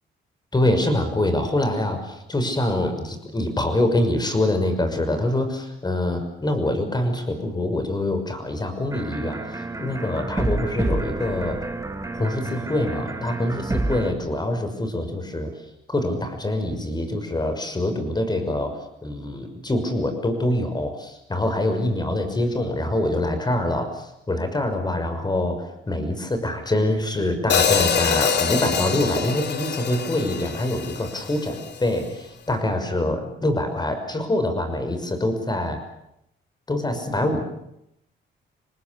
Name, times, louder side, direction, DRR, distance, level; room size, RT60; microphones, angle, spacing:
voice 1, 0.5-11.6 12.1-15.5 15.9-35.8 36.7-37.4, left 1 dB, 20° left, 8 dB, 6.0 m, -25 dB
sound 1, 8.9-14.1, right 2 dB, 15° right, 2.6 m, -29 dB
Hi-hat, 27.5-31.7, left 7 dB, 60° left, 3.1 m, -24 dB
26.5 x 19.5 x 8.5 m, 0.79 s
cardioid pair, 90°, 20 cm